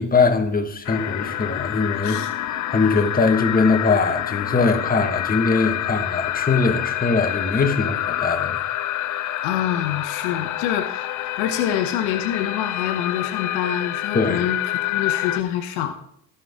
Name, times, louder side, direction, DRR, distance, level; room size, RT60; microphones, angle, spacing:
voice 1, 0.0-8.7 9.1-9.3 14.1-14.5, left 4 dB, 20° left, 1.6 m, -21 dB
sound 1, 0.8-15.4, left 13 dB, 45° left, 0.6 m, -27 dB
voice 2, 9.4-14.6 14.8-15.9, left 10 dB, 75° left, 1.0 m, -26 dB
17.0 x 5.8 x 3.7 m
hypercardioid pair, 70°, 41 cm